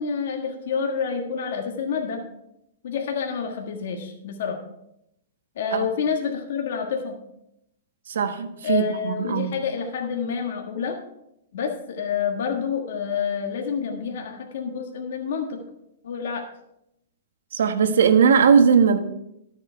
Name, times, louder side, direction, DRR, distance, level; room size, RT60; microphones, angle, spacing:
voice 1, 0.0-2.2 2.8-4.6 5.5-7.2 8.6-10.9 11.5-15.6 16.0-16.5, left 6 dB, 55° left, 2 dB, 1.4 m, -28 dB
voice 2, 8.1-9.5 17.5-19.0, right 6 dB, 75° right, 8 dB, 1.2 m, -19 dB
12.5 x 7.3 x 4.4 m, 0.80 s
hypercardioid pair, 180°, 0 cm